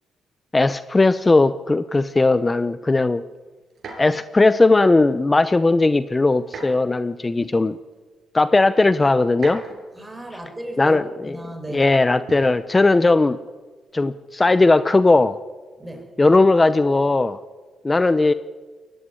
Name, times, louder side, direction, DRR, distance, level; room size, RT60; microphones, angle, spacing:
voice 1, 0.5-3.2 4.0-7.8 8.3-9.6 10.8-11.4 11.7-13.4 13.9-15.4 16.2-17.4 17.8-18.3, left 3 dB, 20° left, 13 dB, 0.7 m, -17 dB
sound 1, 3.7-4.3 6.4-6.9 7.9-8.0 9.3-10.0 12.3-12.6 13.9-14.2, right 4 dB, 55° right, 6.9 m, -37 dB
voice 2, 9.9-11.9 15.8-16.1, right 1 dB, 15° right, 4 dB, 6.0 m, -35 dB
22.0 x 14.5 x 9.9 m, 1.4 s
cardioid pair, 90°, 0 cm